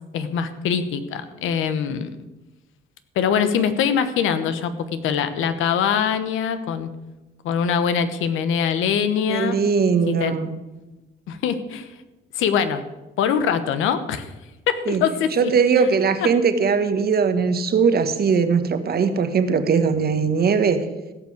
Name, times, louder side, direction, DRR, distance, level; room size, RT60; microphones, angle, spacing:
voice 1, 0.1-2.1 3.1-6.9 7.4-9.6 10.1-10.4 11.3-11.9 12.3-12.8 13.2-14.3 14.7-15.5 15.8-15.9 16.2-16.3, left 7 dB, 85° left, 11 dB, 1.1 m, -23 dB
voice 2, 9.3-10.5 14.9-15.1 15.4-20.9, right 5 dB, 50° right, 10 dB, 1.3 m, -20 dB
16.0 x 5.9 x 7.9 m, 1.1 s
cardioid pair, 90°, 20 cm